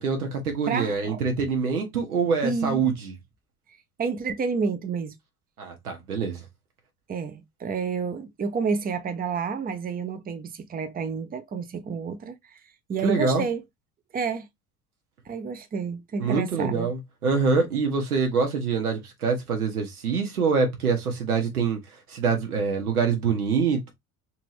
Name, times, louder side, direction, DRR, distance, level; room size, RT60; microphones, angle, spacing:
voice 1, 0.0-3.1 5.6-6.4 13.0-13.5 16.2-21.8 22.1-23.9, right 5 dB, 85° right, 1.2 m, -25 dB
voice 2, 0.7-1.2 2.4-2.8 4.0-5.2 7.1-12.6 12.9-13.6 14.1-14.5 15.3-16.9, right 5 dB, 20° right, 0.7 m, -29 dB
3.5 x 2.9 x 3.1 m
figure-of-eight pair, 60°, 44 cm